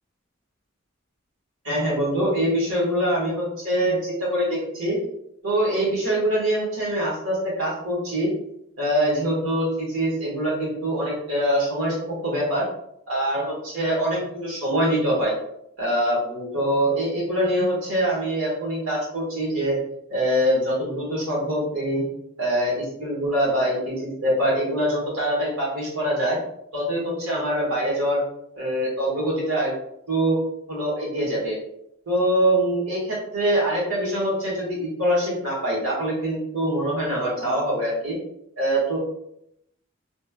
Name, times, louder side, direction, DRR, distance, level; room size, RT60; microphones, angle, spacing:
voice 1, 1.6-5.0 5.4-8.3 8.8-12.0 12.2-12.7 13.1-15.3 15.8-19.8 20.1-22.0 22.4-26.4 26.7-28.2 28.6-29.7 30.1-30.4 30.7-31.6 32.1-38.1 38.6-39.0, right 1 dB, 85° right, -4 dB, 1.5 m, -24 dB
3.1 x 3.1 x 2.2 m, 0.77 s
head